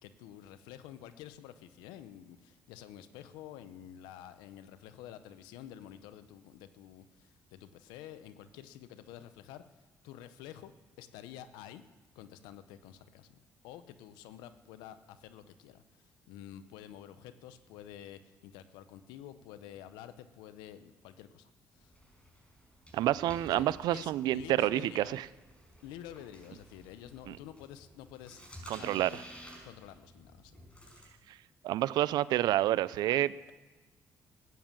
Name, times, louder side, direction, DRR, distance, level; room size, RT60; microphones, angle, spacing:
voice 1, 0.0-10.7 11.0-11.8 12.1-21.9 23.4-25.2 25.8-28.4 28.8-29.2 29.6-30.6 30.9-31.0, left 11 dB, 90° left, 12 dB, 0.7 m, -49 dB
sound 1, 21.7-31.1, equal, 15° left, 5.5 m, -53 dB
voice 2, 22.9-25.2 27.3-27.4 28.7-29.1 31.6-33.3, right 14 dB, 75° right, 19 dB, 0.4 m, -28 dB
15.0 x 9.5 x 7.4 m, 1.2 s
supercardioid pair, 65°, 7 cm